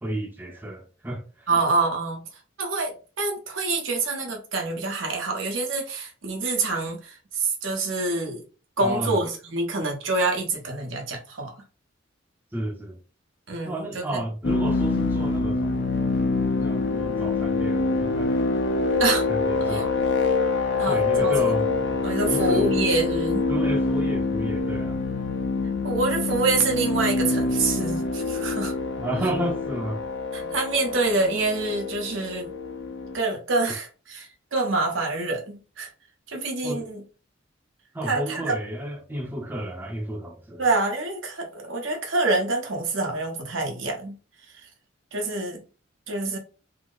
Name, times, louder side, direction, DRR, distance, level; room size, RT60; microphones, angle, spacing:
voice 1, 0.0-1.6 8.8-9.2 12.5-13.0 13.6-15.8 16.6-18.3 19.3-19.9 20.8-22.0 22.2-22.8 23.5-25.0 29.0-30.0 36.6-36.9 37.9-40.6, right 1 dB, 10° right, 0.5 m, -32 dB
voice 2, 1.5-2.2 2.6-8.4 8.8-11.5 13.5-14.2 19.0-19.2 19.7-19.8 20.8-21.3 22.0-23.5 25.8-28.7 30.3-32.5 33.1-35.9 36.3-37.0 38.1-38.5 40.6-44.2 44.5-44.7 45.1-45.6 46.1-46.4, right 3 dB, 75° right, 1.0 m, -26 dB
sound 1, 14.4-33.2, left 3 dB, 60° left, 0.5 m, -25 dB
3.1 x 2.0 x 3.8 m
head